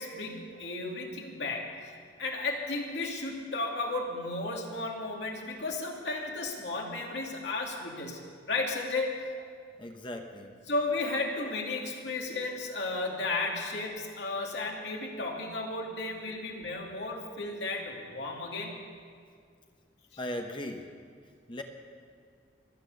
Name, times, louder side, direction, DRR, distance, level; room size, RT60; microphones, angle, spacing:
voice 1, 0.0-8.2 8.5-9.1 10.7-18.7, left 2 dB, 70° left, 0 dB, 2.5 m, -34 dB
voice 2, 9.8-10.6 16.3-16.4 20.2-20.8 21.5-21.6, left 1 dB, 25° left, 4 dB, 1.1 m, -38 dB
23.5 x 9.1 x 6.6 m, 2.1 s
head